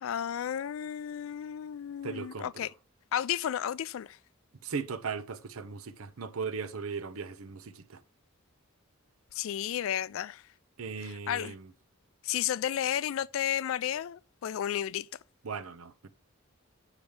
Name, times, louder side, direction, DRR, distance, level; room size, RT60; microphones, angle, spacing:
voice 1, 0.0-2.7 3.1-4.2 9.3-10.4 11.0-11.5 12.2-15.1, left 10 dB, 70° left, 0.3 m, -32 dB
voice 2, 2.0-2.5 4.6-8.0 10.8-11.7 15.4-16.1, right 5 dB, 90° right, 0.7 m, -38 dB
7.1 x 5.0 x 3.3 m
head